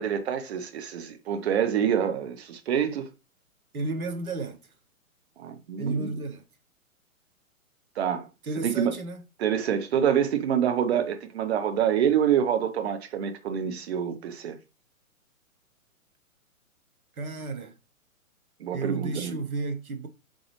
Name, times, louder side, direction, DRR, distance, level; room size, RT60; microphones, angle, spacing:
voice 1, 0.0-3.1 5.4-6.1 8.0-8.3 8.6-8.9 9.4-14.6 18.6-19.4, right 8 dB, 50° right, 0.8 m, -26 dB
voice 2, 3.7-4.6 5.8-6.4 8.4-9.2 17.2-17.7 18.7-20.1, right 3 dB, 80° right, 0.9 m, -32 dB
3.9 x 3.8 x 3.1 m
figure-of-eight pair, 125°, 42 cm